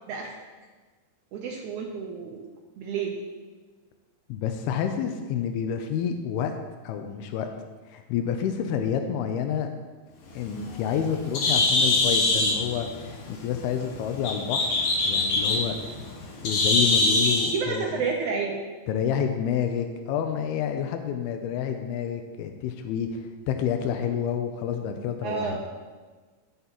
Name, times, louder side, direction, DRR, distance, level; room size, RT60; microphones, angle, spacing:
voice 1, 1.3-2.4 2.8-3.2 17.5-18.6 25.2-25.6, right 5 dB, 80° right, 0 dB, 1.7 m, -30 dB
voice 2, 4.3-6.6 6.8-7.5 7.9-9.7 10.3-14.7 15.1-15.9 16.4-18.0 18.9-25.6, left 8 dB, 85° left, 6 dB, 2.6 m, -29 dB
Bird, 10.3-17.6, left 2 dB, 65° left, 2.1 m, -24 dB
14.0 x 7.6 x 3.0 m, 1.4 s
omnidirectional pair, 4.4 m